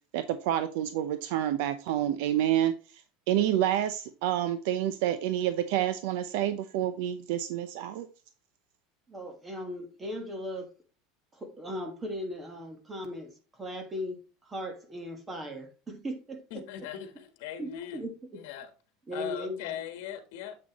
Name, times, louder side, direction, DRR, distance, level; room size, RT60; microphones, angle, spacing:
voice 1, 0.1-2.7 3.3-8.1, right 11 dB, 65° right, 0.6 m, -28 dB
voice 2, 9.1-10.7 11.3-16.6 17.6-18.1 19.1-19.8, equal, 15° right, 1.4 m, -38 dB
voice 3, 16.5-18.0 18.3-18.7 19.1-20.6, left 10 dB, 65° left, 1.3 m, -39 dB
7.7 x 6.3 x 3.0 m
supercardioid pair, 160°, 0 cm